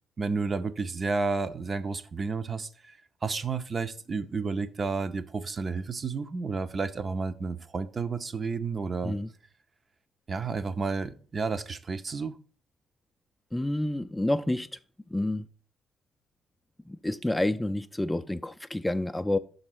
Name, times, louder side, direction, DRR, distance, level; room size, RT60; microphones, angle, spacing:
voice 1, 0.2-2.9 3.2-9.2 10.3-12.3, right 4 dB, 40° right, 0.5 m, -31 dB
voice 2, 13.5-14.7 15.1-15.5 16.9-19.4, left 1 dB, 10° left, 0.4 m, -29 dB
6.0 x 3.9 x 5.9 m
hypercardioid pair, 45°, 0 cm